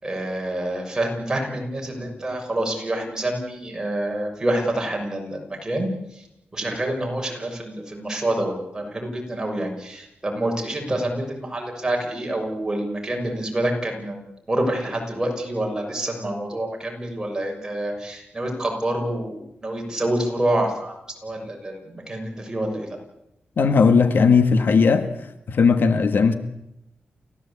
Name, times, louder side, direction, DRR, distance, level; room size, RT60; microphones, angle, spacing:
voice 1, 0.0-6.2 6.5-20.9 21.2-23.0, right 1 dB, 20° right, 2 dB, 6.6 m, -27 dB
voice 2, 23.6-25.1 25.5-26.3, left 5 dB, 65° left, 9 dB, 1.8 m, -17 dB
29.5 x 16.0 x 8.6 m, 0.85 s
wide cardioid pair, 140°, 4 cm